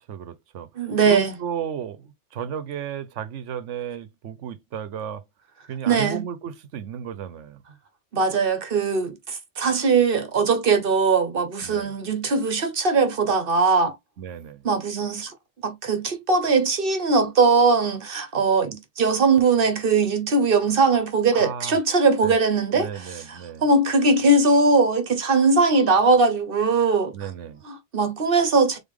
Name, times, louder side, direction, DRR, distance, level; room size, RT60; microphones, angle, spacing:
voice 1, 0.0-5.2 5.7-7.6 11.6-11.9 14.2-14.7 21.3-21.8 22.2-22.4 22.7-23.7 27.1-27.6, right 8 dB, 85° right, 1.0 m, -34 dB
voice 2, 0.8-1.3 5.9-6.2 8.1-13.9 14.6-15.3 15.6-27.1 27.7-28.8, right 4 dB, 50° right, 1.1 m, -20 dB
3.9 x 3.5 x 3.7 m
omnidirectional pair, 1.2 m